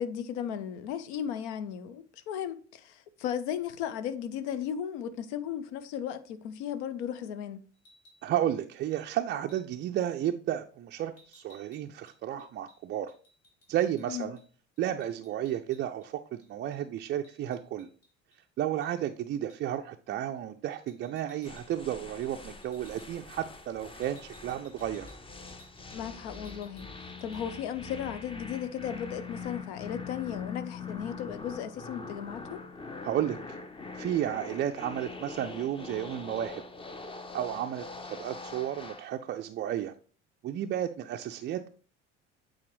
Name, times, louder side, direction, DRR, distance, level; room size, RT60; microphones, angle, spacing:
voice 1, 0.0-7.6 14.1-14.3 25.9-26.9 27.2-32.6, left 9 dB, 65° left, 0.7 m, -35 dB
sound 1, 7.7-8.2 8.9-9.1 9.5-9.8 11.2-14.1 14.4-14.5 14.8-16.1 16.4-18.4 18.8-19.0 19.5-19.7 20.7-21.8 22.1-22.3 22.6-23.1 24.0-26.1 26.3-26.9 27.2-27.4, equal, 40° left, 2.7 m, -61 dB
voice 2, 8.2-13.1 13.7-14.4 14.8-17.9 18.6-25.1 33.0-33.6 33.9-36.6 37.3-39.9 40.4-41.7, right 11 dB, 30° right, 0.4 m, -32 dB
sound 2, 21.4-39.1, left 4 dB, 15° left, 0.7 m, -43 dB
8.4 x 4.3 x 3.1 m
figure-of-eight pair, 60°, 37 cm